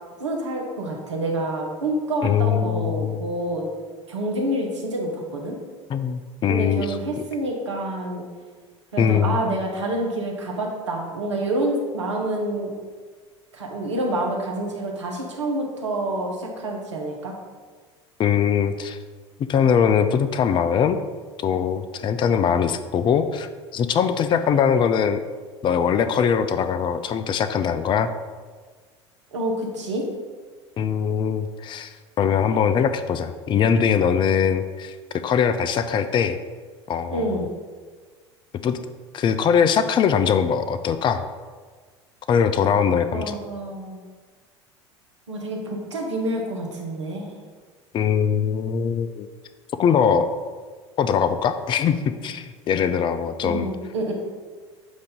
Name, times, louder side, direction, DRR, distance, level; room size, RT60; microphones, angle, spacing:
voice 1, 0.2-3.6 4.1-5.6 6.5-8.2 8.9-12.7 13.5-17.3 29.3-30.0 37.1-37.5 43.1-44.0 45.3-47.3 53.4-54.1, right 1 dB, 90° right, 0 dB, 1.1 m, -27 dB
voice 2, 2.2-3.2 5.9-7.0 9.0-9.4 18.2-19.0 19.4-21.0 21.4-25.2 25.6-28.1 30.8-34.9 35.2-36.4 36.9-37.4 38.6-38.8 39.1-41.2 42.3-43.4 47.9-49.3 49.8-50.3 51.0-53.7, left 7 dB, 35° left, 10 dB, 0.4 m, -21 dB
7.9 x 2.7 x 5.2 m, 1.5 s
hypercardioid pair, 75°, 15 cm